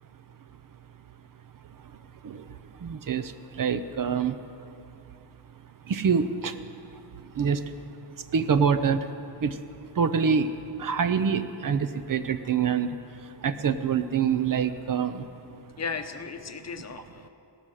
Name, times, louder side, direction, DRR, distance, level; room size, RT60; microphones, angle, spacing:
voice 1, 2.8-4.4 5.9-6.6 6.9-7.0 7.3-7.6 8.3-9.1 9.4-9.6 10.0-10.5 10.8-15.3, right 6 dB, 50° right, 11 dB, 0.6 m, -26 dB
voice 2, 15.8-17.3, left 5 dB, 40° left, 7 dB, 0.8 m, -35 dB
17.5 x 13.0 x 6.4 m, 2.6 s
wide cardioid pair, 175°, 43 cm